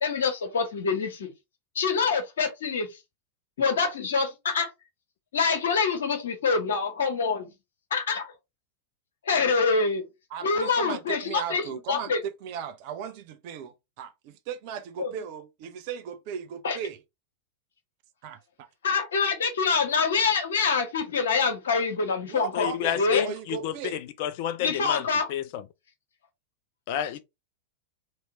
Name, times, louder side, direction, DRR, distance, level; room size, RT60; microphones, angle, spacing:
voice 1, 0.0-1.3 1.7-3.0 3.6-4.7 5.3-7.5 7.9-8.3 9.2-10.0 10.4-12.2 15.0-15.1 16.6-16.8 18.8-22.7 23.0-23.2 24.6-25.3, left 5 dB, 65° left, 1.2 m, -25 dB
voice 2, 10.3-17.0 18.2-18.7 22.3-24.0, right 8 dB, 45° right, 0.6 m, -37 dB
voice 3, 22.5-25.6 26.9-27.2, left 11 dB, 50° left, 0.4 m, -30 dB
3.1 x 2.8 x 4.1 m
figure-of-eight pair, 90°, 0 cm